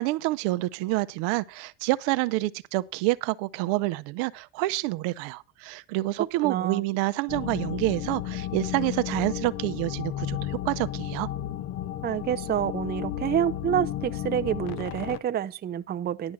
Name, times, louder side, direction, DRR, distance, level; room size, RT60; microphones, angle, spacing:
voice 1, 0.0-11.3, right 19 dB, 75° right, 0.7 m, -28 dB
voice 2, 6.4-6.8 12.0-16.3, right 10 dB, 25° right, 0.5 m, -28 dB
sound 1, 7.3-15.2, left 12 dB, 55° left, 0.8 m, -33 dB
11.0 x 6.2 x 5.9 m
supercardioid pair, 95°, 45 cm